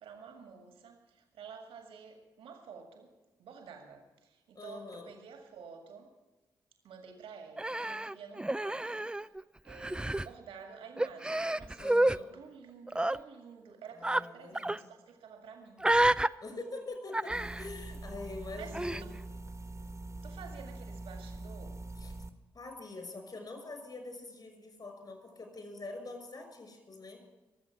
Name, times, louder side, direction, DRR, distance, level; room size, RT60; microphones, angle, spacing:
voice 1, 0.0-3.1 3.4-6.1 6.8-9.3 9.6-12.0 12.3-15.9 18.6-19.2 20.2-21.8, right 6 dB, 75° right, 4 dB, 2.0 m, -50 dB
voice 2, 4.5-5.2 11.8-12.3 13.9-14.9 16.4-19.1 22.0-22.1 22.5-27.2, left 3 dB, 45° left, 5 dB, 6.0 m, -45 dB
Human voice, 7.6-9.4 9.7-10.3 11.0-12.2 12.9-13.2 14.0-14.2 14.5-14.8 15.8-16.3 17.1-17.7 18.7-19.0, right 1 dB, 10° right, 0.4 m, -29 dB
sound 1, 17.3-22.3, right 2 dB, 35° right, 1.4 m, -44 dB
23.0 x 7.8 x 7.2 m, 1.2 s
hypercardioid pair, 40°, 9 cm